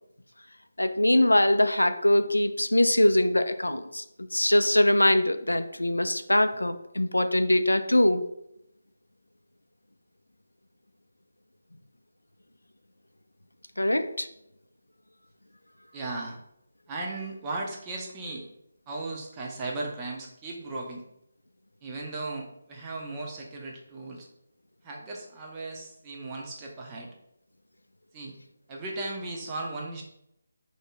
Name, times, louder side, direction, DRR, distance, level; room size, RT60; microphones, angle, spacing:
voice 1, 0.8-4.0 4.3-8.2 13.8-14.3, left 1 dB, 85° left, 9 dB, 0.3 m, -22 dB
voice 2, 15.9-16.4 16.9-18.5 18.9-21.0 21.8-24.3 24.8-27.1 28.1-28.4 28.7-30.0, right 2 dB, 20° right, -2 dB, 0.7 m, -36 dB
3.8 x 2.7 x 3.6 m, 0.79 s
figure-of-eight pair, 155°, 0 cm